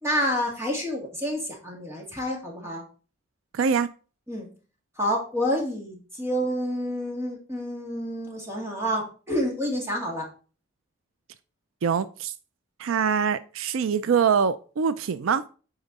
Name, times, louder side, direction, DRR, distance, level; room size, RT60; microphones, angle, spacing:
voice 1, 0.0-2.8 4.3-4.5 5.0-10.3, equal, 15° right, 2.4 m, -28 dB
voice 2, 3.5-3.9 11.8-12.3 12.8-15.4, right 6 dB, 75° right, 0.4 m, -24 dB
8.7 x 4.9 x 4.1 m
head